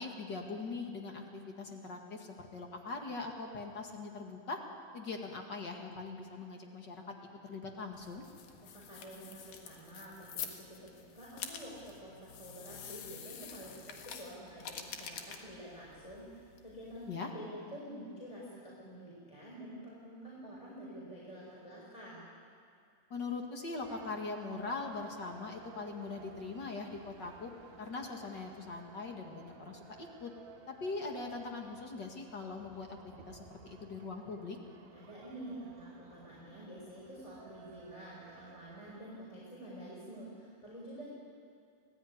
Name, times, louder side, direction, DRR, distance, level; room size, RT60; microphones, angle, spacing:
voice 1, 0.0-4.6 4.9-7.0 7.4-8.2 17.1-17.3 23.1-27.5 27.8-30.3 30.7-34.6, left 3 dB, 40° left, 2 dB, 1.8 m, -41 dB
sound 1, 7.9-17.1, left 7 dB, 60° left, 2.9 m, -48 dB
voice 2, 8.6-17.1 17.3-22.3 34.9-41.1, right 1 dB, 10° left, -5 dB, 4.3 m, -48 dB
sound 2, 23.8-39.0, right 8 dB, 70° right, 3.2 m, -57 dB
25.5 x 17.0 x 9.6 m, 2.3 s
omnidirectional pair, 4.5 m